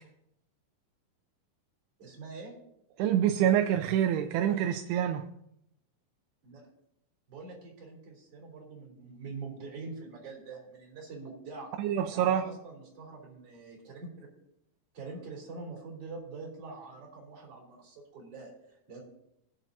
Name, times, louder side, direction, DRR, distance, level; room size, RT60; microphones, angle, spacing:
voice 1, 2.0-2.5 6.4-6.6 7.3-11.7 12.1-14.3 14.9-19.0, right 3 dB, 40° right, -3 dB, 4.0 m, -44 dB
voice 2, 3.0-5.3 11.8-12.4, right 10 dB, 85° right, 6 dB, 2.6 m, -26 dB
22.0 x 7.3 x 2.7 m, 0.78 s
omnidirectional pair, 4.6 m